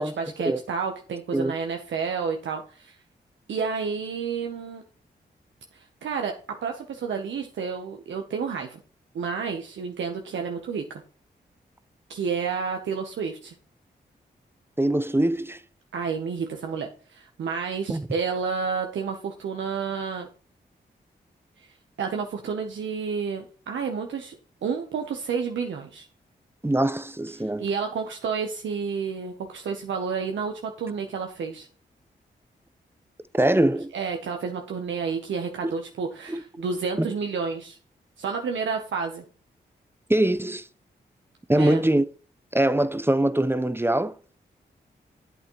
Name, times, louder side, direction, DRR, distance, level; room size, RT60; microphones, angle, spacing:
voice 1, 0.0-2.9 3.5-4.8 6.0-6.3 6.6-8.8 9.1-11.0 12.1-13.5 15.9-20.3 21.6-21.7 22.0-24.4 24.6-26.1 27.6-31.7 33.9-37.8 38.2-39.2 41.5-41.8, right 5 dB, 80° right, 0.9 m, -30 dB
voice 2, 14.8-15.6 17.9-18.1 26.6-27.7 33.3-33.9 36.3-36.6 37.0-37.1 40.1-40.7 41.5-42.1 42.5-44.2, right 1 dB, 10° right, 0.7 m, -23 dB
9.0 x 8.0 x 3.0 m
supercardioid pair, 40°, 19 cm